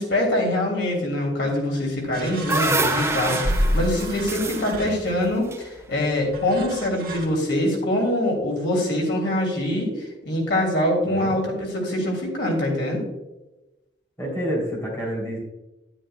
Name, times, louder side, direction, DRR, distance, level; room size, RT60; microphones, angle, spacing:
voice 1, 0.0-13.0, left 1 dB, 80° left, -1 dB, 2.7 m, -24 dB
sound 1, 2.0-6.3, right 2 dB, 15° right, 0.5 m, -27 dB
sound 2, 2.1-5.4 6.3-7.3, equal, 50° right, 1.4 m, -29 dB
voice 2, 11.0-11.4 14.2-15.4, equal, 15° left, -3 dB, 3.0 m, -28 dB
10.5 x 9.9 x 2.2 m, 1.0 s
head